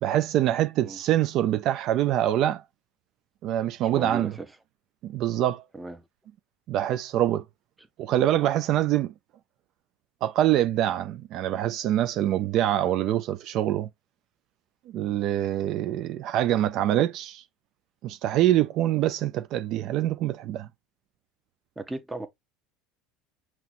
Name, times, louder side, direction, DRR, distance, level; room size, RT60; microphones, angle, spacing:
voice 1, 0.0-2.6 3.4-4.3 5.0-5.6 6.7-7.4 8.0-9.1 10.2-13.9 14.9-17.4 18.0-20.7, right 12 dB, 55° right, 0.4 m, -25 dB
voice 2, 3.9-4.5 5.7-6.0 21.8-22.3, right 2 dB, 10° right, 0.8 m, -36 dB
5.8 x 3.0 x 2.5 m
supercardioid pair, 110°, 0 cm